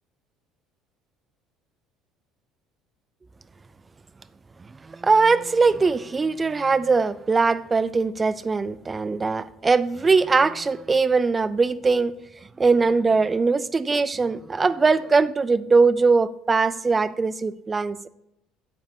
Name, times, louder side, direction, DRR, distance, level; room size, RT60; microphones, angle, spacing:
voice 1, 4.9-12.1 12.6-18.0, right 4 dB, 20° right, 0.4 m, -21 dB
9.4 x 7.2 x 2.7 m
figure-of-eight pair, 60°, 0 cm